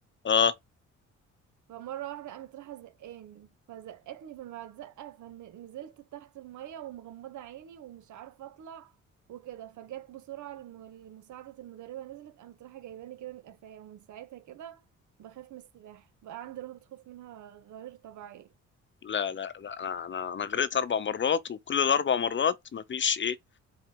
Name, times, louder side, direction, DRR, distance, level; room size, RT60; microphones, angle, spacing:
voice 1, 0.2-0.6 19.0-23.4, left 7 dB, 40° left, 0.8 m, -27 dB
voice 2, 1.7-8.9 9.3-14.8 15.2-18.5, right 12 dB, 75° right, 1.5 m, -44 dB
4.9 x 4.5 x 5.0 m
cardioid pair, 90°, 30 cm